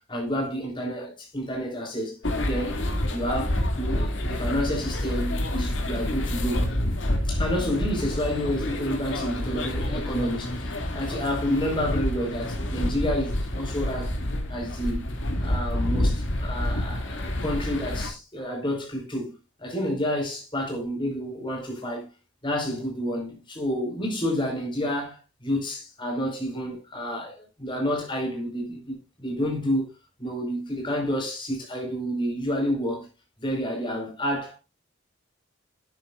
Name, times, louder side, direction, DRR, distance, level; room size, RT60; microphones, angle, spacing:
voice 1, 0.1-2.2 2.4-2.8 3.1-6.8 7.3-14.2 14.5-15.1 15.4-19.3 19.6-22.1 22.4-29.9 30.2-33.1 33.4-34.6, equal, 25° left, 4.9 m, -29 dB
sound 1, 2.2-18.1, left 1 dB, 65° left, 2.5 m, -28 dB
12.0 x 9.3 x 2.5 m
head